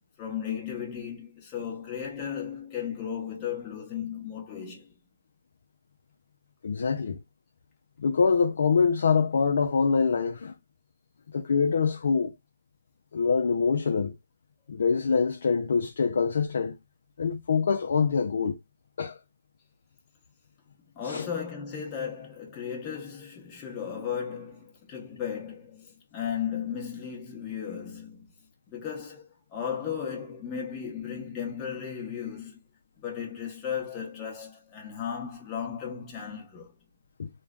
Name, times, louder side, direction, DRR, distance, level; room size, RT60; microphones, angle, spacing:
voice 1, 0.2-4.9 21.0-28.3 28.7-32.6 33.0-36.7, left 8 dB, 20° left, 0.9 m, -35 dB
voice 2, 6.6-7.2 8.0-10.6 11.3-12.3 13.1-14.1 14.7-16.8 17.2-18.6 19.0-19.2 21.0-21.3 37.2-37.3, left 5 dB, 65° left, 0.4 m, -25 dB
3.1 x 2.1 x 2.3 m
hypercardioid pair, 150°, 0 cm